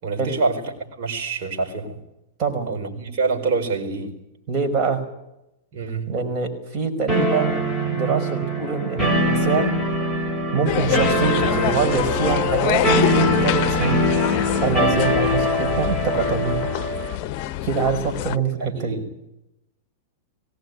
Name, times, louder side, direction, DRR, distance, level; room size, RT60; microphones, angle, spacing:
voice 1, 0.0-2.0 2.7-4.2 5.7-6.1 18.6-19.1, right 3 dB, 55° right, 2 dB, 4.7 m, -26 dB
voice 2, 4.5-5.0 6.1-7.5 7.9-9.7 10.5-12.8 13.1-14.1 14.6-16.6 17.6-18.9, right 5 dB, 35° right, 5 dB, 5.0 m, -24 dB
sound 1, 7.1-17.2, equal, 15° right, 6.0 m, -23 dB
sound 2, 10.7-18.4, left 14 dB, 50° left, 0.7 m, -26 dB
19.5 x 17.0 x 9.5 m, 0.88 s
hypercardioid pair, 110°, 0 cm